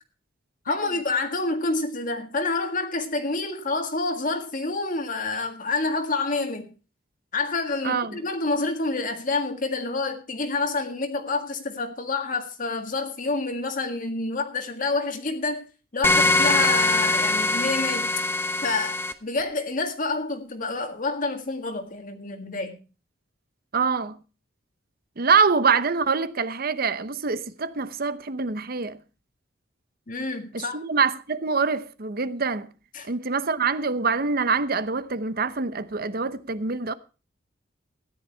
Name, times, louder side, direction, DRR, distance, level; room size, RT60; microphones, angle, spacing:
voice 1, 0.7-6.7 7.3-15.7 15.9-18.1 18.6-22.8 30.1-30.8 32.9-33.1, left 3 dB, 45° left, 1.8 m, -28 dB
voice 2, 7.8-8.2 23.7-24.2 25.2-29.0 30.5-32.7 33.1-36.9, right 5 dB, 55° right, 0.9 m, -25 dB
sound 1, 16.0-19.1, left 2 dB, 15° left, 1.0 m, -22 dB
14.0 x 10.5 x 4.5 m
head